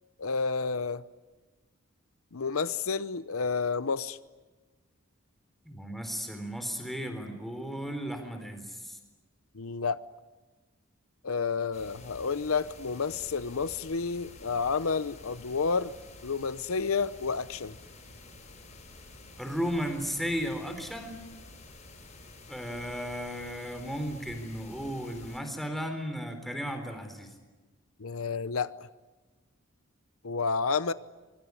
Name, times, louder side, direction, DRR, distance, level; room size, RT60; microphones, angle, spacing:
voice 1, 0.2-1.0 2.3-4.2 9.5-10.0 11.2-15.9 16.2-17.8 28.0-28.7 30.2-30.9, left 5 dB, 85° left, 0.8 m, -30 dB
voice 2, 5.6-9.0 19.4-21.2 22.5-27.3, equal, ahead, 3.9 m, -35 dB
sound 1, 11.7-25.4, left 2 dB, 35° left, 7.4 m, -50 dB
25.0 x 23.0 x 9.8 m
head